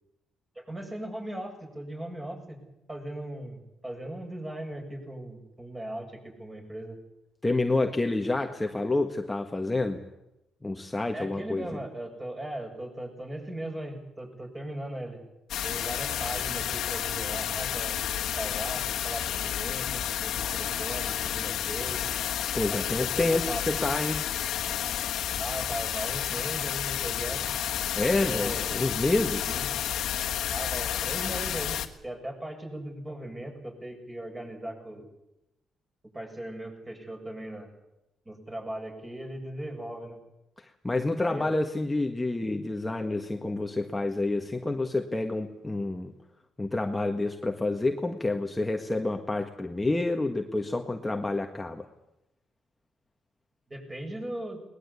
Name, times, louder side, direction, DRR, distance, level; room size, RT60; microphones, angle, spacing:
voice 1, 0.6-2.6 2.9-7.0 11.1-15.2 15.6-18.0 18.4-22.1 22.7-23.6 25.4-27.4 28.2-28.7 29.4-29.7 30.5-31.8 32.0-35.1 36.1-37.7 38.3-40.2 41.2-41.5 53.7-54.6, right 1 dB, 20° right, 2 dB, 7.3 m, -38 dB
voice 2, 7.4-10.1 10.6-11.8 22.5-24.2 28.0-29.6 40.6-46.1 46.6-51.9, left 2 dB, 15° left, 4 dB, 1.6 m, -28 dB
Hong Kong Fontain in Kowloon Park, 15.5-31.9, left 10 dB, 80° left, 1.7 m, -31 dB
21.0 x 20.0 x 8.4 m, 0.92 s
cardioid pair, 90°, 0 cm